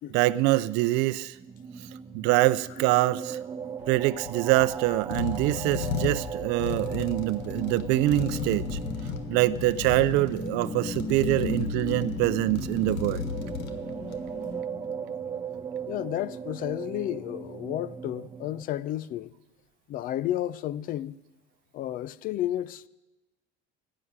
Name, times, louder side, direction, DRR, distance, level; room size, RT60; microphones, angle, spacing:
voice 1, 0.1-1.3 2.1-3.4 3.9-8.6 9.3-13.2, right 17 dB, 70° right, 0.5 m, -24 dB
sound 1, 1.3-18.6, right 6 dB, 20° right, 0.5 m, -38 dB
sound 2, 3.8-14.4, left 6 dB, 70° left, 1.4 m, -35 dB
sound 3, 7.1-15.9, left 3 dB, 25° left, 1.3 m, -38 dB
voice 2, 15.9-19.3 19.9-21.2 21.7-22.9, left 13 dB, 50° left, 0.5 m, -32 dB
15.5 x 7.7 x 9.5 m
cardioid pair, 130°, 18 cm